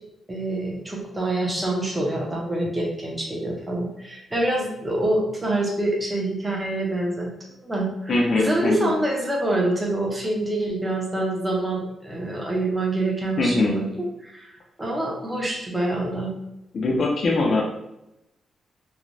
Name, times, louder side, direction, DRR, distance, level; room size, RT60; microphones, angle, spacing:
voice 1, 0.3-7.3 7.6-13.9 14.2-14.5 14.8-16.3, right 1 dB, 15° right, -3 dB, 0.5 m, -26 dB
voice 2, 8.1-8.9 13.4-13.7 16.7-17.6, left 2 dB, 45° left, -1 dB, 0.4 m, -22 dB
3.1 x 2.1 x 2.5 m, 0.87 s
wide cardioid pair, 145°, 0 cm